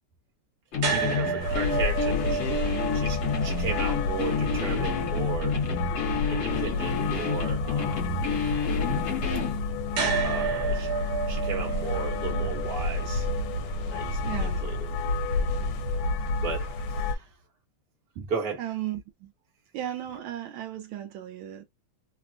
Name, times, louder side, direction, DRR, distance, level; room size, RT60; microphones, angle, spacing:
sound 1, 0.7-9.6, left 6 dB, 55° left, 1.3 m, -30 dB
sound 2, 0.8-16.9, right 5 dB, 60° right, 1.3 m, -35 dB
voice 1, 0.9-5.6 6.3-8.2 10.2-10.9 11.3-13.3 13.5-14.8 16.4-17.2 18.3-18.6, right 5 dB, 35° right, 1.0 m, -35 dB
sound 3, 1.4-17.1, left 2 dB, 80° left, 1.4 m, -30 dB
voice 2, 14.2-14.6 18.2-18.3 18.6-19.3 19.7-21.6, right 12 dB, 80° right, 1.3 m, -35 dB
3.4 x 2.1 x 2.5 m
omnidirectional pair, 2.3 m